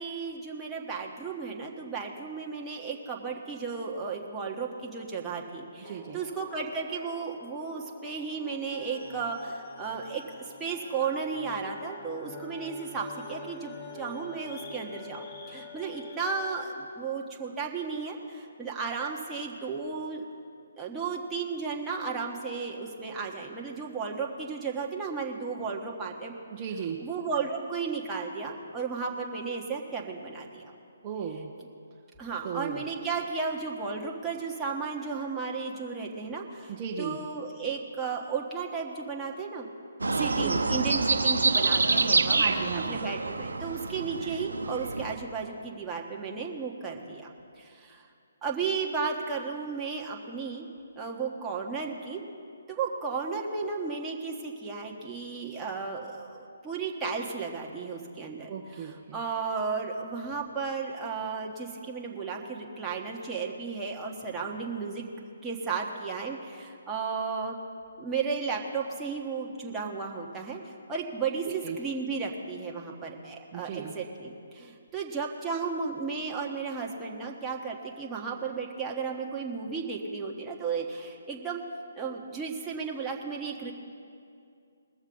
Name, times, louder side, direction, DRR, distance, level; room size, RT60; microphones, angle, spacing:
voice 1, 0.0-20.2 20.8-26.3 27.0-30.6 32.2-39.7 40.1-42.4 42.9-47.3 47.6-48.1 48.4-50.7 51.0-52.2 52.7-58.5 58.8-65.0 65.4-67.6 68.0-70.6 70.9-81.6 81.9-83.7, right 5 dB, 10° right, -2 dB, 1.4 m, -34 dB
sound 1, 5.8-16.6, left 3 dB, 35° left, 1.7 m, -46 dB
voice 2, 5.9-6.2 26.5-27.0 31.0-31.5 32.4-32.9 36.7-37.2 40.4-40.6 42.4-43.0 58.5-59.2 71.5-71.8 73.5-73.9, right 7 dB, 30° right, -1 dB, 1.0 m, -36 dB
sound 2, 40.0-45.2, right 3 dB, 80° right, 0.8 m, -26 dB
20.5 x 7.2 x 5.4 m, 2.4 s
figure-of-eight pair, 145°, 0 cm